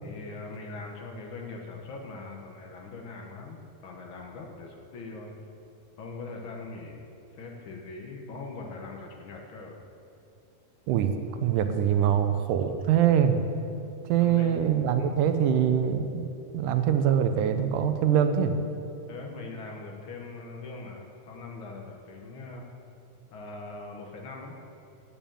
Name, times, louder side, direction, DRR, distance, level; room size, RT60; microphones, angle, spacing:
voice 1, 0.0-5.3 6.0-9.8 14.2-14.6 15.0-15.2 19.1-22.7 23.3-24.6, left 3 dB, 75° left, 0 dB, 1.1 m, -41 dB
voice 2, 11.4-13.4 14.1-16.2 16.5-18.5, right 9 dB, 85° right, 8 dB, 2.2 m, -23 dB
9.0 x 6.9 x 8.8 m, 2.8 s
omnidirectional pair, 3.7 m